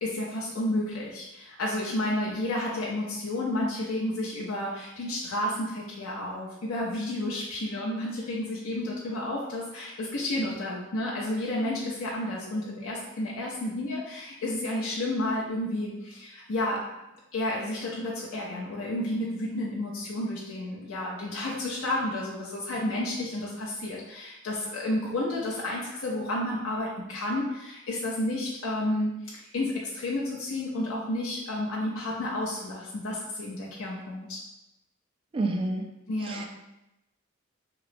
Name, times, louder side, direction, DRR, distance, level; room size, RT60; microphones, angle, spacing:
voice 1, 0.0-16.8 17.3-34.4 36.1-36.5, left 1 dB, 75° left, -5 dB, 0.5 m, -31 dB
voice 2, 35.3-35.8 36.2-36.5, right 2 dB, 25° right, 3 dB, 0.3 m, -28 dB
3.0 x 2.9 x 2.5 m, 0.93 s
head